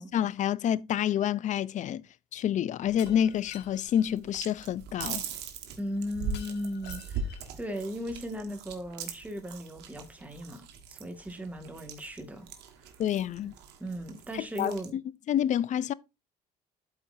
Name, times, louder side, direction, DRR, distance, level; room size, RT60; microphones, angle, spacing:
voice 1, 0.0-2.0 2.3-5.2 13.0-13.5 14.3-15.0 15.3-15.9, left 10 dB, 45° left, 0.4 m, -28 dB
sound 1, 2.9-14.9, right 6 dB, 90° right, 1.5 m, -41 dB
Shatter, 3.0-4.1 6.3-7.6, left 11 dB, 75° left, 1.0 m, -51 dB
voice 2, 5.8-10.6 10.9-12.5 13.4-13.5 13.8-14.9, equal, 10° right, 1.8 m, -37 dB
12.5 x 4.4 x 2.6 m
cardioid pair, 110°, 17 cm